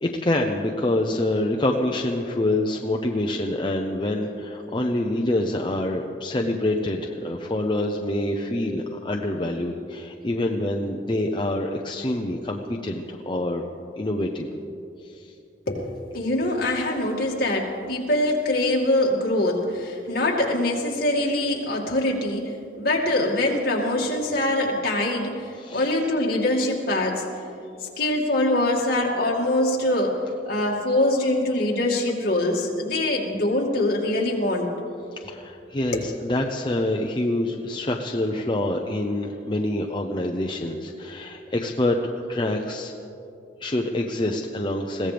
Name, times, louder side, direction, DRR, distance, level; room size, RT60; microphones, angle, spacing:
voice 1, 0.0-13.7 13.9-14.5 15.0-15.3 25.6-25.9 35.2-42.9 43.6-45.1, left 1 dB, 25° left, 1 dB, 0.7 m, -26 dB
voice 2, 15.7-27.2 27.8-30.2 30.5-34.7 35.9-36.1, left 1 dB, 55° left, -2 dB, 2.4 m, -24 dB
22.0 x 16.0 x 3.5 m, 2.6 s
head